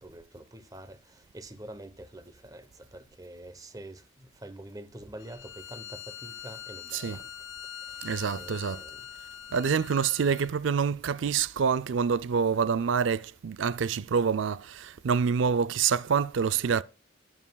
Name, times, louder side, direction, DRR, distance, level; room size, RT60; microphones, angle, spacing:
voice 1, 0.0-1.0 1.3-2.6 2.9-4.0 4.4-7.2 8.4-9.0, right 1 dB, 20° right, 0.9 m, -45 dB
Bowed string instrument, 5.2-10.6, left 9 dB, 75° left, 1.2 m, -43 dB
voice 2, 8.0-8.8 9.5-16.8, right 6 dB, 75° right, 0.4 m, -26 dB
13.5 x 9.6 x 2.3 m
head